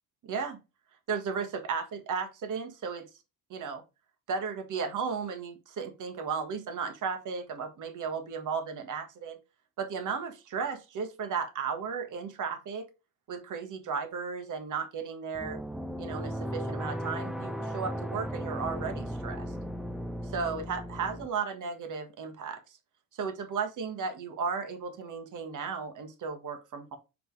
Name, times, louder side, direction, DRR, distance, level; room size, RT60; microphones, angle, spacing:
voice 1, 0.2-0.6 1.1-3.1 3.5-3.8 4.3-9.4 9.8-12.8 13.3-15.6 16.0-19.4 20.3-22.6 23.1-27.0, right 5 dB, 55° right, 7 dB, 1.7 m, -35 dB
sound 1, 15.3-21.3, equal, ahead, 0.5 m, -36 dB
6.0 x 5.2 x 3.3 m, 0.27 s
supercardioid pair, 85°, 37 cm